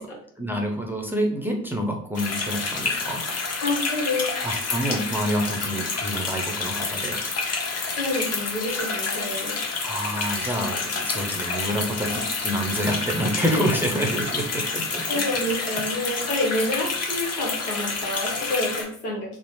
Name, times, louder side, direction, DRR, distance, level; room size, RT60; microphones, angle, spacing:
voice 1, 0.0-3.2 4.4-7.2 9.8-15.8, equal, 5° right, 0 dB, 0.5 m, -28 dB
sound 1, 2.1-18.8, left 4 dB, 35° left, 0.9 m, -29 dB
voice 2, 3.6-4.2 8.0-9.6 13.3-13.7 14.7-14.8 15.1-19.4, left 1 dB, 85° left, -2 dB, 0.9 m, -28 dB
3.0 x 2.0 x 3.0 m, 0.66 s
figure-of-eight pair, 50°, 44 cm